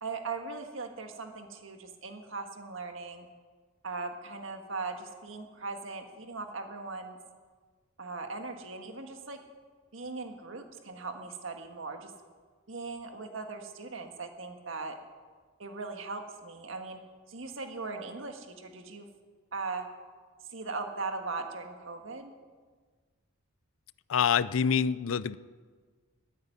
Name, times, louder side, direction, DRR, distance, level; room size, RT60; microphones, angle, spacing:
voice 1, 0.0-3.3 3.8-7.2 8.0-9.4 9.9-12.1 12.7-15.0 15.6-17.0 17.3-19.1 19.5-19.9 20.5-22.3, right 3 dB, 70° right, 5 dB, 1.6 m, -39 dB
voice 2, 24.1-25.4, left 7 dB, 75° left, 17 dB, 0.4 m, -26 dB
13.5 x 9.3 x 9.8 m, 1.5 s
head